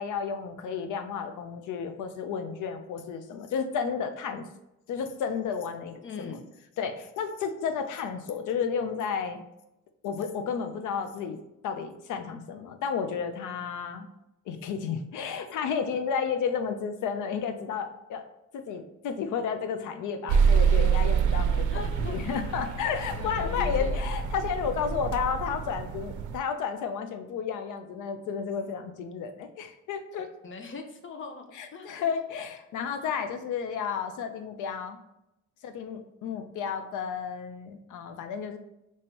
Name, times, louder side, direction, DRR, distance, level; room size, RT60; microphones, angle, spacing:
voice 1, 0.0-4.5 4.9-6.4 6.8-9.4 10.0-14.1 14.5-18.2 18.5-30.3 31.5-35.0 35.6-38.6, left 6 dB, 80° left, 7 dB, 0.6 m, -32 dB
voice 2, 6.0-6.5 21.7-22.2 23.1-24.0 30.4-31.5 31.7-32.2, left 4 dB, 40° left, 5 dB, 0.8 m, -40 dB
sound 1, 20.3-26.4, right 6 dB, 75° right, 0.5 m, -26 dB
5.3 x 3.2 x 2.9 m, 0.89 s
cardioid pair, 90°, 30 cm